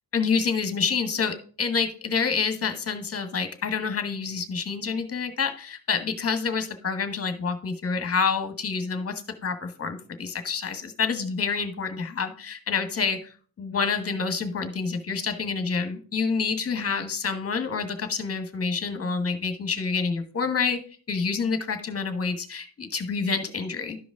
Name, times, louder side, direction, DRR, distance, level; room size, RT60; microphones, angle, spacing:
voice 1, 0.1-13.2 13.6-20.8 21.1-24.0, left 5 dB, 35° left, 7 dB, 1.3 m, -28 dB
12.0 x 5.0 x 3.6 m, 0.42 s
cardioid pair, 110°, 40 cm